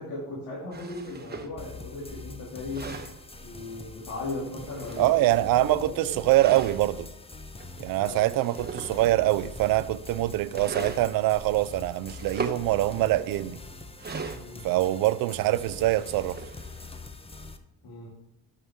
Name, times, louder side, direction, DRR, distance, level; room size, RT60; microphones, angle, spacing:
voice 1, 0.0-2.8 3.4-6.2 7.9-8.3 14.3-14.7 17.8-18.1, left 2 dB, 75° left, 2.5 m, -37 dB
sound 1, 0.7-1.6 2.5-3.2 4.5-5.6 6.2-6.8 7.6-7.7 8.2-9.4 10.5-11.1 12.0-12.6 14.0-14.8 15.7-16.9, right 4 dB, 30° right, 1.0 m, -38 dB
sound 2, 1.6-17.6, left 3 dB, 15° left, 0.9 m, -44 dB
voice 2, 5.0-7.1 7.8-13.6 14.6-16.4, right 16 dB, 75° right, 0.5 m, -24 dB
12.5 x 5.7 x 3.6 m
cardioid pair, 75°, 34 cm